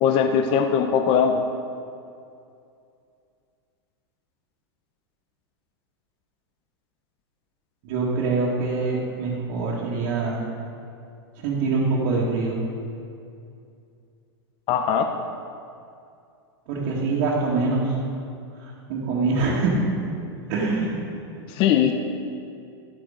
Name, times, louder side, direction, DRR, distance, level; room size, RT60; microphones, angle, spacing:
voice 1, 0.0-1.4 14.7-15.1 21.6-21.9, left 7 dB, 40° left, 6 dB, 0.6 m, -20 dB
voice 2, 7.8-10.4 11.4-12.6 16.7-17.9 18.9-19.8 20.5-20.9, right 3 dB, 55° right, -6 dB, 2.0 m, -24 dB
12.0 x 8.5 x 3.8 m, 2.5 s
hypercardioid pair, 120°, 14 cm